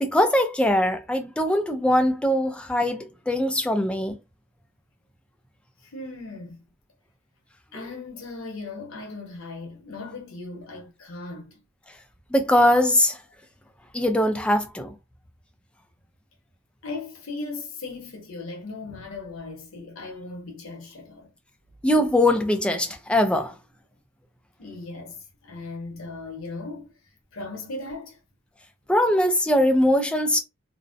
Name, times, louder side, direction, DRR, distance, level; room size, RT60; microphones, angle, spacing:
voice 1, 0.0-4.2 12.3-13.2 13.9-14.9 21.8-23.5 28.9-30.4, left 1 dB, 5° left, 0.3 m, -21 dB
voice 2, 5.8-6.6 7.7-11.6 16.8-21.3 24.6-26.9 27.3-28.2, left 3 dB, 65° left, 0.8 m, -37 dB
2.5 x 2.0 x 2.5 m
head